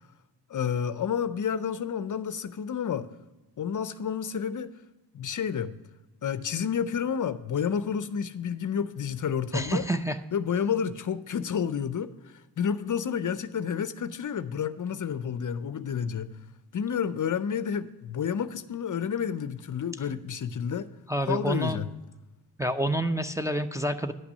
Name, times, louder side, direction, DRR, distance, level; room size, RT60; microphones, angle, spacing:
voice 1, 0.5-3.1 3.6-4.7 5.1-5.7 6.2-9.8 10.3-16.3 16.7-20.9 21.3-21.9, left 7 dB, 45° left, 13 dB, 0.6 m, -30 dB
voice 2, 9.5-10.2 21.1-21.8 22.6-24.1, right 1 dB, 5° right, 5 dB, 0.6 m, -28 dB
10.5 x 5.9 x 6.5 m, 1.1 s
cardioid pair, 60°, 44 cm